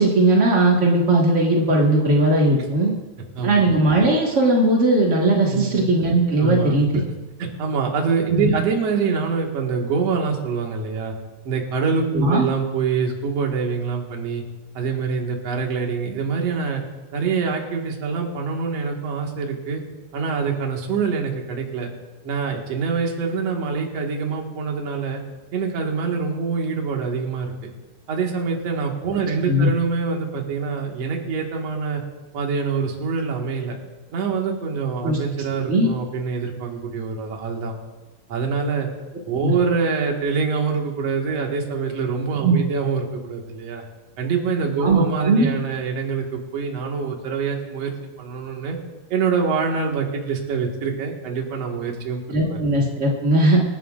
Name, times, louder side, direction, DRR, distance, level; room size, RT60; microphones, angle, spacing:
voice 1, 0.0-2.9 3.4-7.0 8.3-8.5 12.1-12.5 29.5-29.7 35.0-35.2 35.7-35.9 39.4-39.5 42.4-42.6 44.8-45.5 52.3-53.6, right 2 dB, 70° right, -2 dB, 0.6 m, -18 dB
voice 2, 3.4-3.7 5.5-5.8 6.4-6.7 7.4-11.1 11.5-14.4 14.7-16.8 17.1-19.8 20.1-21.9 22.2-25.2 25.5-27.7 28.1-32.0 32.3-33.8 34.1-37.7 38.3-38.9 39.3-43.8 44.2-47.9 48.2-48.8 49.1-52.6, right 5 dB, 50° right, 0 dB, 2.4 m, -25 dB
26.0 x 11.5 x 2.5 m, 1.2 s
omnidirectional pair, 4.4 m